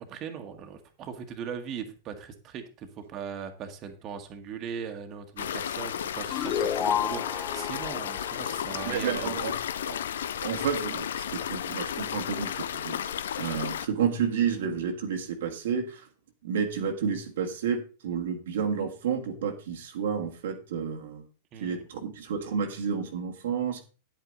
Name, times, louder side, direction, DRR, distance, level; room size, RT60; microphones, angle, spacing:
voice 1, 0.1-9.4 21.5-21.8, right 7 dB, 35° right, 5 dB, 1.5 m, -39 dB
sound 1, 5.4-13.9, left 9 dB, 70° left, 0.5 m, -33 dB
sound 2, 6.3-9.5, left 9 dB, 35° left, 0.7 m, -32 dB
voice 2, 8.8-9.5 9.8-10.0 10.4-16.1 16.4-21.3 21.6-23.8, right 7 dB, 65° right, 3 dB, 1.6 m, -31 dB
9.9 x 8.5 x 3.9 m, 0.35 s
figure-of-eight pair, 100°, 0 cm